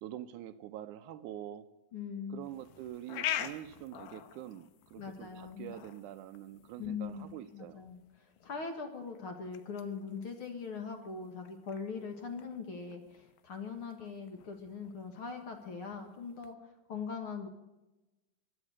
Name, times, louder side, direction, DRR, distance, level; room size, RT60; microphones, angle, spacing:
voice 1, 0.0-1.7 2.3-7.8, right 12 dB, 80° right, 10 dB, 2.0 m, -45 dB
voice 2, 1.9-2.5 5.0-5.8 6.8-17.5, left 5 dB, 50° left, 4 dB, 2.2 m, -41 dB
sound 1, 2.4-16.5, left 11 dB, 90° left, 2.5 m, -46 dB
16.0 x 12.0 x 6.4 m, 1.0 s
omnidirectional pair, 3.7 m